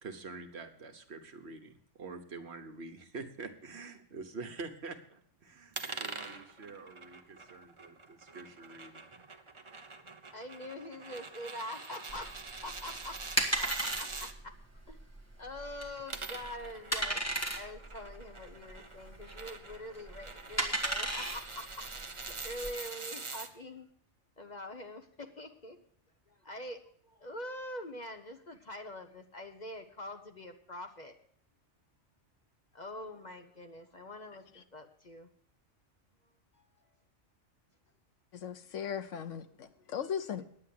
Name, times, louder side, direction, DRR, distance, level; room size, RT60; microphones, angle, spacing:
voice 1, 0.0-9.1, right 3 dB, 60° right, 1.5 m, -46 dB
sound 1, 5.7-14.3 15.9-23.5, right 3 dB, 30° right, 0.9 m, -45 dB
voice 2, 10.3-12.3 12.6-13.2 13.6-14.6 14.9-15.0 15.4-17.2 17.5-23.9 24.4-25.8 26.3-31.2 32.7-35.3 39.8-39.9, left 1 dB, 40° left, 1.0 m, -44 dB
sound 2, 12.1-22.7, right 1 dB, 15° left, 1.7 m, -36 dB
voice 3, 38.3-40.4, left 8 dB, 90° left, 1.2 m, -38 dB
10.5 x 8.5 x 7.6 m
omnidirectional pair, 1.2 m